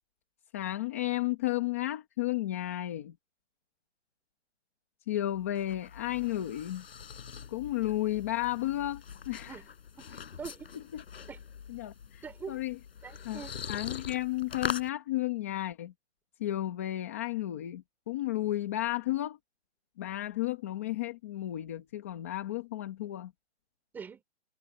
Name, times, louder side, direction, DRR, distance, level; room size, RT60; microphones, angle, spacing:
voice 1, 0.5-3.1 5.1-6.9 7.5-9.6 10.9-11.0 11.7-12.8 13.2-13.4 13.7-15.9 16.4-19.4 20.0-23.3, left 15 dB, 10° left, 0.9 m, -33 dB
sound 1, 5.3-14.9, left 7 dB, 55° left, 4.4 m, -42 dB
voice 2, 10.0-10.7 11.3-11.5 12.2-12.6 13.0-13.6 23.9-24.2, right 6 dB, 5° right, 4.0 m, -44 dB
hypercardioid pair, 180°, 36 cm